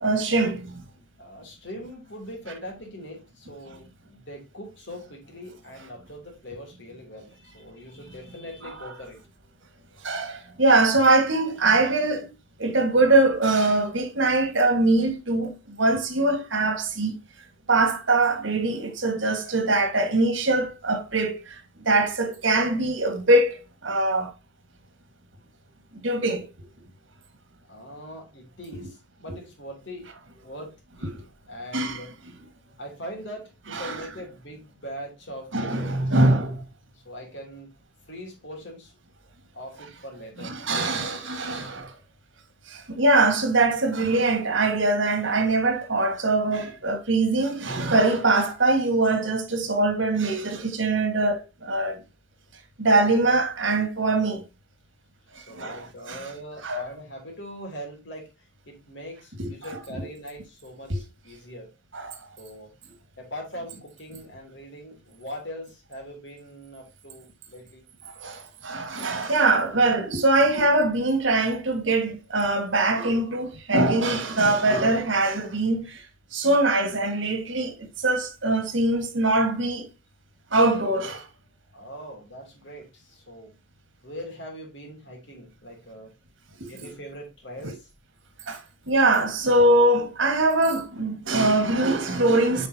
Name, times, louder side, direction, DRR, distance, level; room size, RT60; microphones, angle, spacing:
voice 1, 0.0-0.8 10.0-12.3 12.6-17.2 17.7-21.6 21.9-24.3 26.0-26.5 31.7-32.1 33.7-34.0 35.5-36.6 40.4-41.9 42.7-52.0 52.8-54.4 55.6-56.2 56.6-56.8 59.4-59.5 60.9-61.0 61.9-62.2 68.2-76.1 76.3-79.9 80.5-81.3 86.6-86.9 88.5-88.6 88.9-92.7, right 2 dB, 75° right, 1.7 m, -22 dB
voice 2, 1.0-9.2 27.7-30.1 30.4-31.1 31.5-32.1 32.8-35.5 35.8-36.1 36.9-37.7 38.1-38.9 39.5-40.6 55.3-61.7 62.4-62.7 63.2-67.9 81.7-83.5 84.0-86.1 86.7-87.9, equal, 65° left, 3.1 m, -41 dB
8.6 x 5.3 x 2.8 m
head